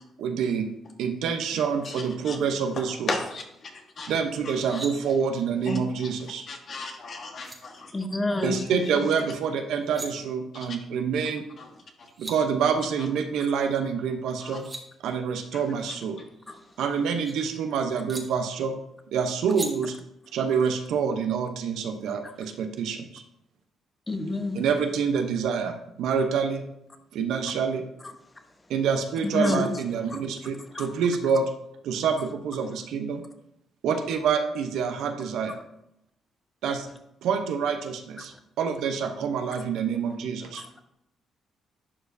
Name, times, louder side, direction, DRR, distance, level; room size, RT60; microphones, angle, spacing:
voice 1, 0.2-0.7 1.0-3.1 4.1-6.4 8.4-11.4 12.2-14.6 15.0-16.2 16.8-18.7 19.1-19.9 20.3-23.2 24.5-26.6 27.1-27.8 28.7-31.5 31.8-33.2 33.8-35.5 36.6-36.9 37.2-40.6, right 6 dB, 80° right, 0.8 m, -27 dB
voice 2, 2.8-3.4 4.0-4.1 5.7-5.8 6.5-7.9 8.4-8.6 14.4-14.6, left 3 dB, 50° left, 1.4 m, -33 dB
sound 1, 4.4-4.9 7.0-7.1 7.4-7.6 9.6-10.1 11.8-11.9 12.0-12.4 14.3-14.8 16.3-17.3 18.1-18.2 19.5-19.7, right 3 dB, 30° right, 1.2 m, -39 dB
voice 3, 7.9-8.5 16.5-16.6 22.2-22.3 24.1-24.6 29.2-29.7 30.7-30.9 38.2-38.3, left 2 dB, 20° left, 0.9 m, -27 dB
11.0 x 4.8 x 2.7 m
cardioid pair, 90°, 0 cm